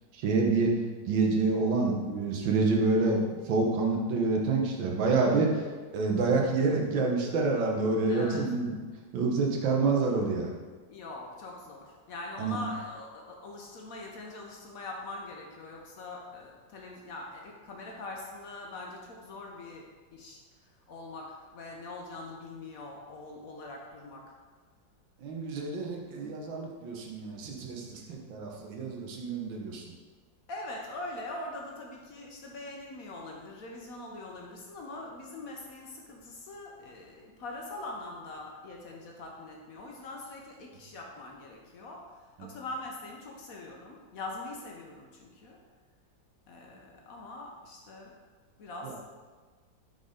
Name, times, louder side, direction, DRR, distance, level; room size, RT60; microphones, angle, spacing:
voice 1, 0.1-0.7 1.1-5.6 5.9-8.8 9.1-10.5 12.4-12.6 25.2-29.9 42.4-42.5 48.8-49.0, right 3 dB, 90° right, 0 dB, 1.7 m, -27 dB
voice 2, 8.1-8.4 10.9-19.8 20.1-20.4 20.9-24.3 30.5-42.0 42.4-45.6 46.5-48.1 48.6-49.1, left 2 dB, 60° left, -1 dB, 1.0 m, -42 dB
5.5 x 4.0 x 4.9 m, 1.4 s
omnidirectional pair, 2.0 m